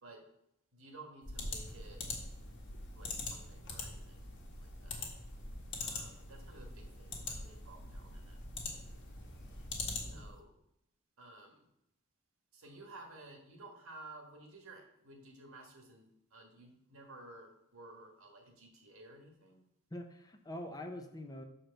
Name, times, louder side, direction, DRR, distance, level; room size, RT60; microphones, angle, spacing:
voice 1, 0.7-2.1 2.9-5.1 5.8-8.4 10.0-10.5 11.2-11.7 12.5-19.6, right 2 dB, 70° right, 3 dB, 1.5 m, -54 dB
sound 1, 1.2-10.4, left 3 dB, 55° left, 1.5 m, -43 dB
voice 2, 9.9-10.3 19.9-21.4, left 1 dB, 15° left, 5 dB, 0.6 m, -45 dB
6.4 x 4.4 x 6.5 m, 0.80 s
head